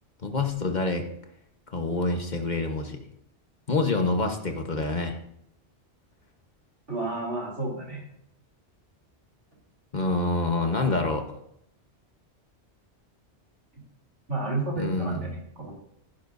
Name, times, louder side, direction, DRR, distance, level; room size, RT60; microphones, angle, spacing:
voice 1, 0.2-1.0 1.7-3.0 3.7-5.2 9.9-11.2 14.7-15.4, left 2 dB, 40° left, 4 dB, 1.3 m, -27 dB
voice 2, 6.9-8.1 14.3-15.7, right 2 dB, 90° right, -2 dB, 3.7 m, -31 dB
15.5 x 10.5 x 2.7 m, 0.76 s
omnidirectional pair, 1.2 m